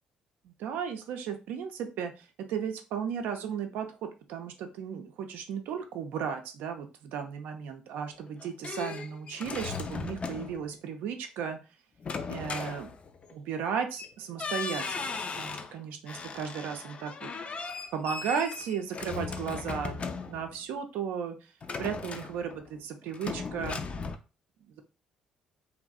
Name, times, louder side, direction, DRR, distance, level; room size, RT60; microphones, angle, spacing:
voice 1, 0.4-11.6 12.3-12.9 13.5-17.3 17.9-21.5 21.8-23.8 24.7-24.8, right 7 dB, 70° right, 6 dB, 0.4 m, -35 dB
sound 1, 8.2-10.7 12.0-13.3 14.0-14.1 14.4-15.7 16.1-20.6 21.6-22.8 23.1-24.2, left 4 dB, 40° left, 0.3 m, -37 dB
2.6 x 2.0 x 2.3 m, 0.31 s
hypercardioid pair, 55°, 3 cm